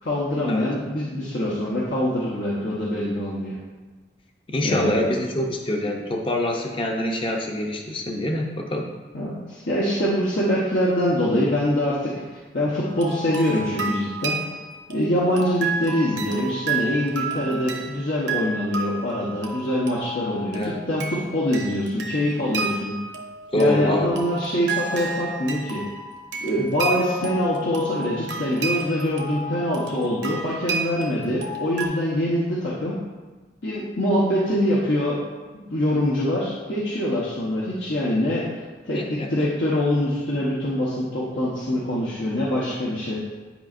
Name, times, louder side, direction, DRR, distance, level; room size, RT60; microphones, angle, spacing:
voice 1, 0.0-3.6 4.6-5.0 9.1-12.2 12.5-14.4 14.9-23.0 23.5-25.8 26.4-33.0 33.6-35.2 35.7-38.5 38.8-43.2, left 1 dB, 85° left, -6 dB, 1.0 m, -24 dB
voice 2, 4.5-8.9 20.5-20.8 23.5-24.1 38.9-39.5, left 1 dB, 30° left, 1 dB, 0.6 m, -25 dB
sound 1, 12.9-31.9, right 4 dB, 80° right, 1.0 m, -32 dB
10.0 x 5.3 x 2.5 m, 1.3 s
head